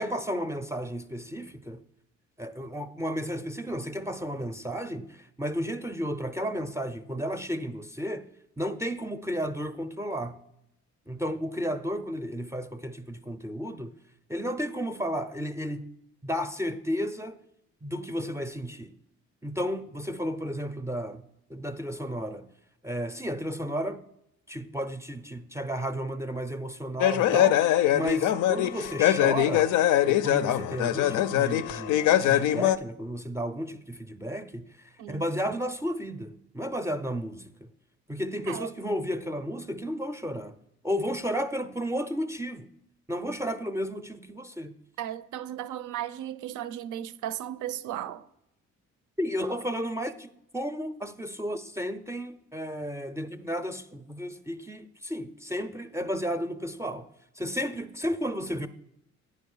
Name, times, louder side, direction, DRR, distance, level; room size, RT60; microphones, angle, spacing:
voice 1, 0.0-1.8 2.4-8.3 8.6-10.4 11.1-13.9 14.3-15.9 16.2-17.4 17.8-19.0 19.4-21.2 21.5-22.5 22.8-24.0 24.5-29.7 30.1-37.7 38.1-40.6 40.8-42.7 43.1-44.8 49.2-57.1 57.4-58.7, equal, 10° right, 0.4 m, -33 dB
sound 1, 27.0-32.8, left 12 dB, 80° left, 0.5 m, -23 dB
voice 2, 45.0-48.3, right 11 dB, 80° right, 0.5 m, -35 dB
9.4 x 5.0 x 5.5 m
cardioid pair, 90°, 30 cm